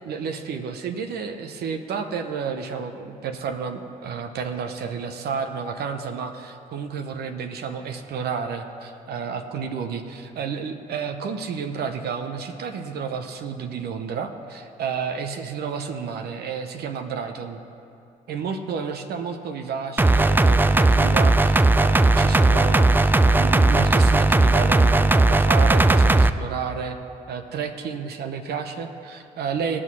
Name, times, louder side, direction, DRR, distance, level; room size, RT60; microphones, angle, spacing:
voice 1, 0.0-17.6 18.3-27.0 27.3-29.8, right 6 dB, 70° right, 6 dB, 1.0 m, -31 dB
sound 1, 20.0-26.3, right 2 dB, 10° right, 0.5 m, -17 dB
18.0 x 6.2 x 6.3 m, 2.6 s
supercardioid pair, 60°, 17 cm